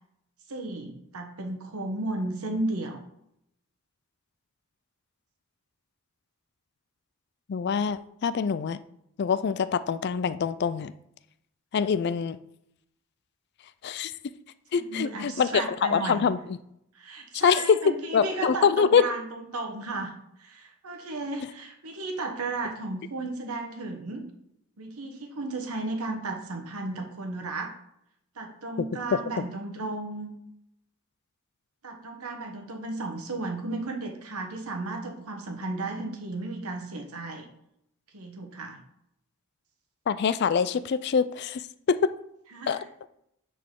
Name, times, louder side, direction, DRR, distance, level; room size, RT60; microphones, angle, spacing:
voice 1, 0.5-3.0 14.7-16.2 16.9-20.1 20.4-24.2 24.8-27.7 28.3-30.3 31.8-37.5 38.1-38.8 42.5-42.8, right 2 dB, 90° right, 4 dB, 1.1 m, -34 dB
voice 2, 7.5-8.8 9.2-10.9 11.7-12.4 13.8-14.1 14.7-16.6 17.3-17.8 18.1-19.1 40.1-42.1 42.7-42.8, left 6 dB, 50° left, 14 dB, 0.3 m, -24 dB
9.3 x 4.0 x 3.7 m, 0.78 s
head